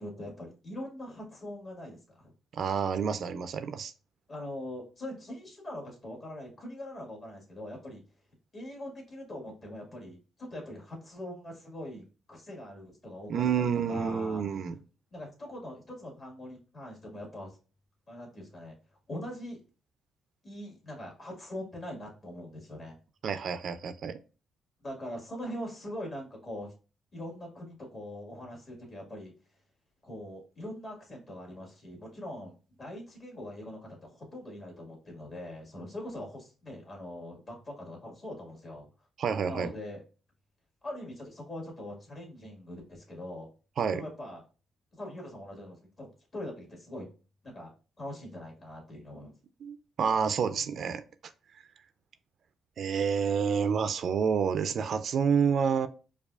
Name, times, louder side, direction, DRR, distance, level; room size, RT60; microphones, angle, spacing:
voice 1, 0.0-2.3 4.3-8.0 8.5-12.0 12.3-14.4 15.1-17.6 18.1-18.7 19.1-19.6 20.4-23.0 24.8-26.7 27.1-29.3 30.0-38.9 39.5-40.0 40.8-43.5 43.9-44.4 45.0-47.0 47.4-47.7 48.0-49.3, left 1 dB, 40° left, 1.7 m, -42 dB
voice 2, 2.5-3.9 13.3-14.8 23.2-24.2 39.2-39.7 43.8-44.0 49.6-51.0 52.8-55.9, right 6 dB, 60° right, 0.3 m, -28 dB
4.8 x 2.3 x 2.3 m
cardioid pair, 90°, 0 cm